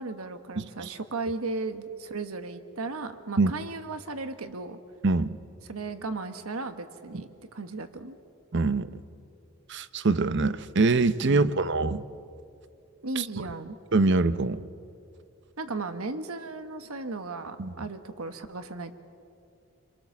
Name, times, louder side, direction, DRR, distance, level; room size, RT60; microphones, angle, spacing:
voice 1, 0.0-4.8 5.7-8.2 13.0-13.8 15.6-18.9, right 3 dB, 90° right, 9 dB, 1.3 m, -36 dB
voice 2, 5.0-5.4 7.1-7.2 8.5-8.9 9.7-12.0 13.2-13.3 13.9-14.6 17.6-17.7, right 3 dB, 55° right, 14 dB, 0.7 m, -24 dB
29.0 x 23.0 x 7.2 m, 2.5 s
head